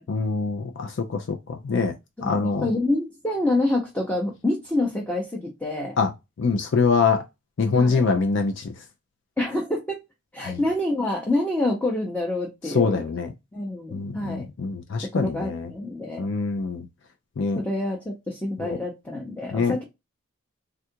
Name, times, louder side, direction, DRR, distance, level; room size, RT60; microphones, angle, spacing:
voice 1, 0.1-1.9 2.2-2.6 6.0-6.1 6.4-7.2 7.6-8.6 10.4-10.6 12.7-13.3 13.9-15.7 16.2-16.9 17.4-17.6 18.6-18.8 19.5-19.8, left 4 dB, 55° left, 0.4 m, -24 dB
voice 2, 2.2-6.0 7.7-8.1 9.4-10.0 10.3-13.0 13.5-14.4 15.1-16.3 17.5-19.8, left 2 dB, 5° left, 0.6 m, -27 dB
3.4 x 2.4 x 2.7 m
head